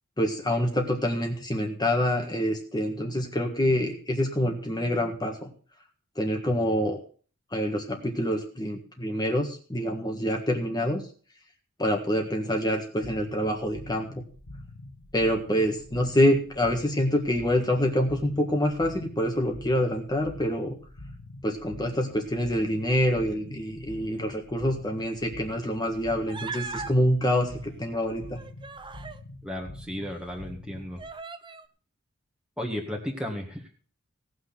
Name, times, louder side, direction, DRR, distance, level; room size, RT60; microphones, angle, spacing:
voice 1, 0.2-5.5 6.1-7.0 7.5-11.0 11.8-14.2 15.1-20.8 21.4-28.4, equal, 20° left, 3 dB, 1.6 m, -26 dB
sound 1, 13.0-31.1, left 1 dB, 75° left, 1.6 m, -45 dB
Human voice, 26.3-26.9 28.1-29.2 30.0-30.1 31.0-31.7, right 5 dB, 20° right, 0.7 m, -38 dB
voice 2, 29.4-31.0 32.6-33.7, left 1 dB, 5° right, 0 dB, 1.9 m, -34 dB
18.0 x 6.3 x 5.9 m, 0.41 s
head